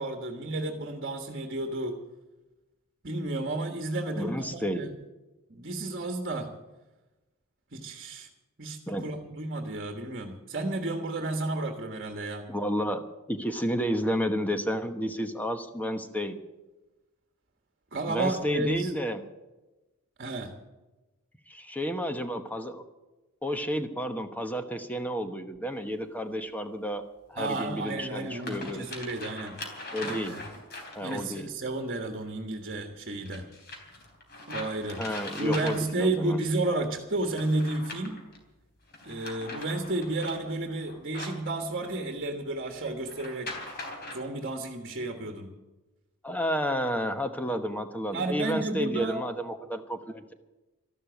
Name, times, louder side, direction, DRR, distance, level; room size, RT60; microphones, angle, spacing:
voice 1, 0.0-2.0 3.0-4.9 5.5-6.5 7.7-8.3 8.6-12.4 17.9-18.9 20.2-20.5 27.4-29.5 30.0-30.4 31.0-33.4 34.5-35.0 35.4-38.2 39.0-43.5 44.1-45.5 48.1-49.2, right 2 dB, 45° right, 5 dB, 1.5 m, -32 dB
voice 2, 4.2-4.8 8.9-9.1 12.5-13.0 13.3-16.3 18.1-19.2 21.5-22.8 23.4-27.0 27.3-28.8 29.9-30.4 30.9-31.5 35.0-36.4 46.2-50.3, equal, 5° left, 8 dB, 1.1 m, -31 dB
sound 1, 25.8-25.9 27.4-27.5 28.1-31.4 33.3-36.2 37.2-38.4 38.9-42.0 43.1-44.2, left 2 dB, 45° left, 3.6 m, -41 dB
13.5 x 12.0 x 8.0 m, 1.1 s
head